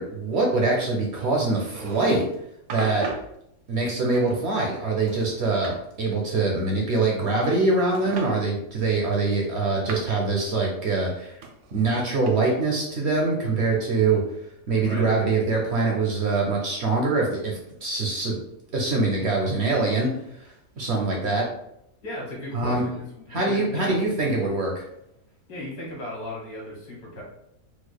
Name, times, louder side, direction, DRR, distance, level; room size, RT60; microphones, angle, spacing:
voice 1, 0.0-2.2 2.7-3.0 3.7-11.4 11.7-14.2 14.7-18.3 18.7-20.1 20.8-21.4 22.5-22.8 23.3-24.8, right 3 dB, 65° right, -1 dB, 0.7 m, -24 dB
sound 1, 1.5-2.4 2.7-3.3 4.1-4.8 5.1-5.8 7.0-7.6 7.9-8.3 9.1-10.2 11.4-12.3, right 4 dB, 85° right, 1.1 m, -37 dB
voice 2, 22.0-24.1 25.5-27.2, left 1 dB, 90° left, -4 dB, 1.8 m, -36 dB
4.4 x 2.3 x 2.2 m, 0.78 s
omnidirectional pair, 1.7 m